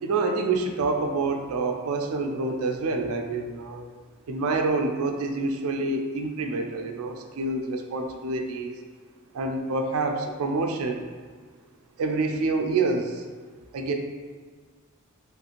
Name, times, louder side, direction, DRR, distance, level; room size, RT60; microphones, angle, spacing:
voice 1, 0.0-3.8 4.3-8.8 9.3-11.1 12.0-13.3 13.7-13.9, right 3 dB, 75° right, 4 dB, 0.3 m, -27 dB
3.0 x 2.4 x 2.9 m, 1.6 s
head